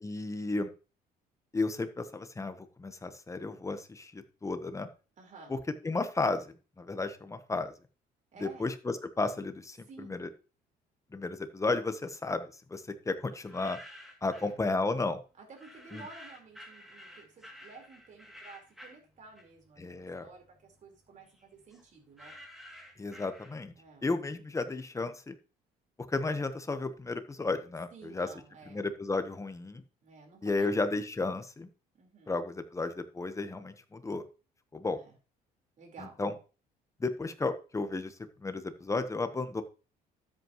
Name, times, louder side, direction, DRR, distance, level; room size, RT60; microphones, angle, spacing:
voice 1, 0.0-0.7 1.5-4.9 5.5-5.6 5.8-7.7 8.4-10.3 11.1-13.8 14.2-15.2 15.9-16.1 19.8-20.3 23.0-23.7 24.0-25.3 26.1-28.3 28.7-29.8 30.4-31.7 32.3-34.2 34.7-35.0 36.2-36.3 37.0-39.6, left 3 dB, 20° left, 9 dB, 1.2 m, -33 dB
voice 2, 5.2-5.5 8.3-8.7 9.9-10.2 14.3-14.6 15.4-22.4 23.8-24.1 27.9-28.8 30.0-30.7 31.9-32.3 34.9-35.1 35.8-36.2, right 4 dB, 45° right, 2 dB, 4.4 m, -52 dB
sound 1, 13.3-14.6 15.5-19.8 20.1-23.9, equal, ahead, 2.6 m, -52 dB
13.0 x 8.2 x 3.1 m, 0.34 s
cardioid pair, 110°, 17 cm